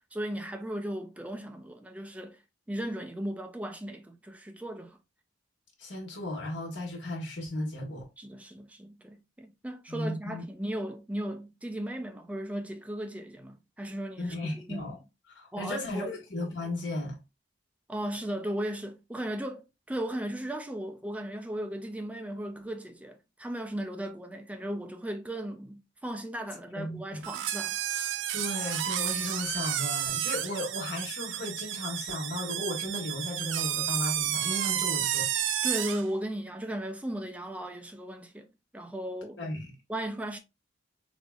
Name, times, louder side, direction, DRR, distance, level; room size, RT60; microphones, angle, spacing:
voice 1, 0.1-2.4 2.7-5.0 8.2-14.9 15.5-16.2 17.9-27.8 35.6-38.5 38.7-39.4 39.9-40.4, right 1 dB, 5° right, 0.4 m, -36 dB
voice 2, 5.8-8.1 9.9-10.4 14.2-15.0 15.3-17.2 26.7-27.2 28.3-35.3 39.4-39.7, left 1 dB, 65° left, 1.5 m, -35 dB
sound 1, 27.2-36.1, right 11 dB, 75° right, 0.4 m, -31 dB
4.0 x 2.9 x 2.3 m
head